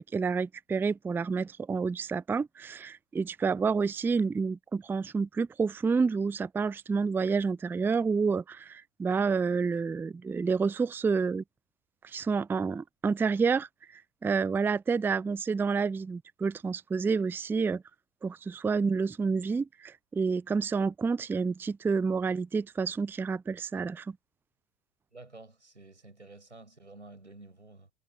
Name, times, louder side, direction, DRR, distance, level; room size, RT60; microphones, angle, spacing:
voice 1, 0.0-11.4 12.0-17.8 18.2-24.2, right 5 dB, 5° right, 0.5 m, -29 dB
voice 2, 25.1-27.9, right 2 dB, 85° right, 7.4 m, -51 dB
figure-of-eight pair, 85°, 34 cm